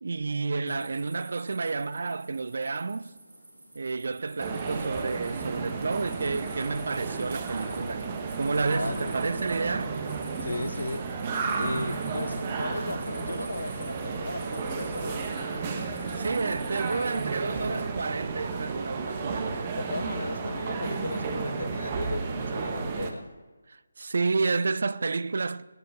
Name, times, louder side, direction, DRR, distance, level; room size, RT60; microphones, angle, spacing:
voice 1, 0.0-3.1 3.7-8.1 8.4-9.9 16.1-19.6 23.7-25.6, right 4 dB, 55° right, 0.5 m, -30 dB
sound 1, 0.7-17.9, right 1 dB, 70° right, 4.1 m, -49 dB
sound 2, 4.4-23.1, right 4 dB, 25° right, 1.3 m, -33 dB
voice 2, 8.7-9.4 10.4-11.1 11.6-15.3 19.7-23.3, left 2 dB, 70° left, 0.5 m, -36 dB
21.5 x 10.5 x 3.7 m
figure-of-eight pair, 150°, 0 cm